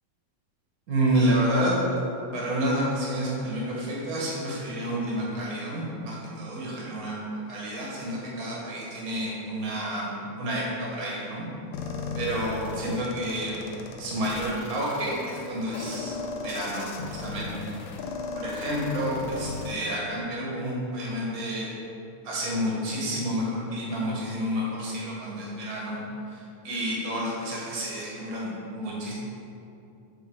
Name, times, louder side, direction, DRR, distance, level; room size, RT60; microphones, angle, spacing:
voice 1, 0.9-1.8 2.3-7.1 7.5-11.4 12.2-13.6 14.0-16.1 16.4-17.7 18.3-21.7 22.2-26.0 26.3-29.1, right 1 dB, 60° right, -5 dB, 0.9 m, -29 dB
sound 1, 11.7-19.7, left 4 dB, 80° left, 1.7 m, -36 dB
8.6 x 3.6 x 4.6 m, 2.7 s
omnidirectional pair, 3.8 m